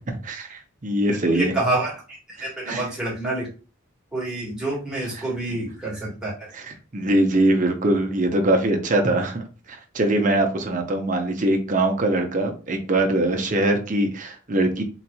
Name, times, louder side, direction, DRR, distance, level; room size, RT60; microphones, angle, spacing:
voice 1, 0.0-1.5 2.4-2.8 5.2-5.3 6.5-14.8, right 1 dB, 35° right, 4 dB, 0.6 m, -22 dB
voice 2, 1.2-3.5 4.1-6.5, right 2 dB, 5° right, -6 dB, 1.4 m, -28 dB
3.8 x 2.9 x 2.2 m, 0.34 s
head